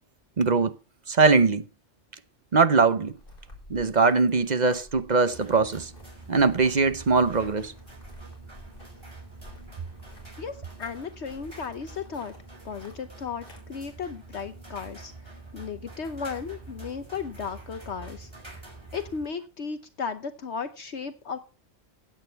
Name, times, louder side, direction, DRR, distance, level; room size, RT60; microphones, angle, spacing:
voice 1, 0.4-0.7 1.1-1.6 2.5-3.1 3.7-5.9 6.3-7.7, right 4 dB, 40° right, 0.8 m, -21 dB
sound 1, 3.1-13.6, left 1 dB, 45° left, 4.6 m, -52 dB
sound 2, 5.3-19.3, right 2 dB, 20° right, 4.8 m, -46 dB
voice 2, 10.4-12.3 12.6-18.3 18.6-18.7 18.9-21.4, left 6 dB, 65° left, 1.2 m, -35 dB
15.5 x 8.9 x 4.6 m
omnidirectional pair, 1.3 m